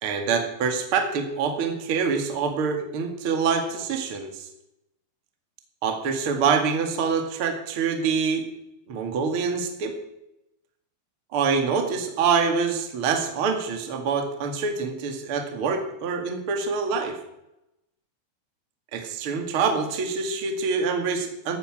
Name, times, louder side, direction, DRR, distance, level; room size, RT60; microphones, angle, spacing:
voice 1, 0.0-4.5 5.8-8.5 8.9-9.9 11.3-17.2 18.9-21.6, right 5 dB, 40° right, 5 dB, 2.1 m, -25 dB
14.5 x 9.8 x 9.1 m, 0.87 s
omnidirectional pair, 5.2 m